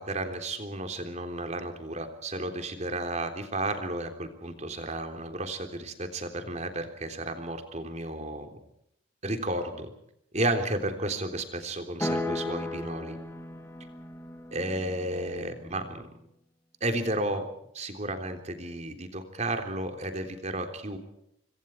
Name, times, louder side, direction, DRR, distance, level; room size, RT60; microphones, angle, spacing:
voice 1, 0.0-8.6 9.2-9.9 10.3-13.2 14.5-16.1 16.8-17.5 17.7-21.0, right 1 dB, 35° right, 6 dB, 3.6 m, -33 dB
sound 1, 12.0-16.1, left 1 dB, 10° left, 2.5 m, -36 dB
26.0 x 25.5 x 4.7 m, 0.76 s
head